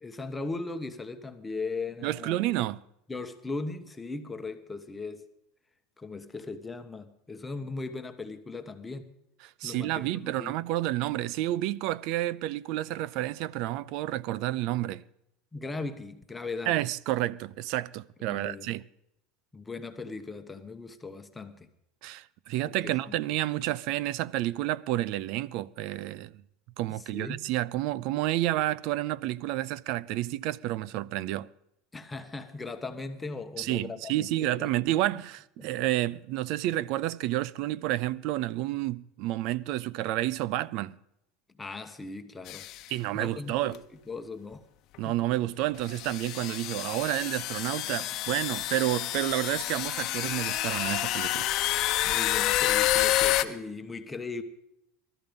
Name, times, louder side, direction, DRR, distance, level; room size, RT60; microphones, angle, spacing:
voice 1, 0.0-2.6 3.1-5.2 6.0-9.1 9.6-10.6 15.5-16.8 18.3-18.7 19.5-21.7 22.6-23.2 26.9-27.4 31.9-34.7 35.6-35.7 41.6-42.7 43.1-44.7 45.0-45.2 52.0-54.4, left 3 dB, 10° left, 1.3 m, -38 dB
voice 2, 2.0-2.8 9.4-15.0 16.7-18.8 22.0-26.3 26.8-31.5 33.6-41.0 42.9-43.8 45.0-51.5, right 15 dB, 60° right, 0.6 m, -30 dB
sound 1, 42.5-42.8 43.7-43.8 44.9-45.0 45.9-53.4, left 15 dB, 50° left, 1.0 m, -28 dB
19.0 x 13.5 x 5.3 m
supercardioid pair, 130°, 0 cm